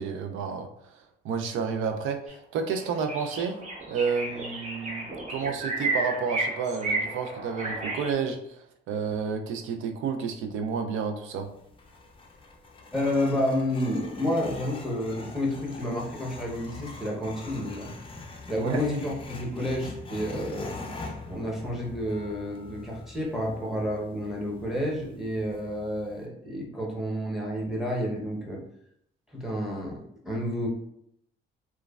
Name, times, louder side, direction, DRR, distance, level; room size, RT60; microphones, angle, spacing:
voice 1, 0.0-2.2 2.5-3.6 3.9-8.4 8.9-11.5 18.6-18.8, right 6 dB, 80° right, 6 dB, 0.4 m, -30 dB
sound 1, 2.3-2.4 2.7-8.1, right 2 dB, 35° right, 0.8 m, -32 dB
sound 2, 11.4-26.3, left 3 dB, 25° left, 0.4 m, -43 dB
voice 2, 12.9-17.9 18.5-28.6 29.3-30.7, left 1 dB, ahead, -3 dB, 0.8 m, -30 dB
3.0 x 2.2 x 2.3 m, 0.73 s
cardioid pair, 90°, 20 cm